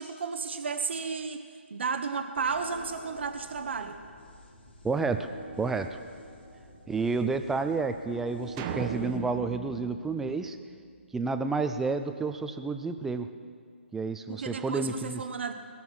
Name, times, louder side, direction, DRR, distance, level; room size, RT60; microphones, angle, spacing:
voice 1, 0.0-1.4 1.7-4.0 14.3-15.5, right 5 dB, 60° right, 8 dB, 0.9 m, -33 dB
sound 1, 2.4-10.0, equal, 55° left, 3.2 m, -49 dB
voice 2, 4.8-5.3 5.6-5.9 6.9-10.6 11.1-13.3 13.9-15.2, right 4 dB, 5° right, 8 dB, 0.4 m, -30 dB
sound 2, 8.6-11.0, right 6 dB, 25° right, 0.9 m, -37 dB
20.5 x 7.1 x 6.1 m, 2.1 s
figure-of-eight pair, 145°, 7 cm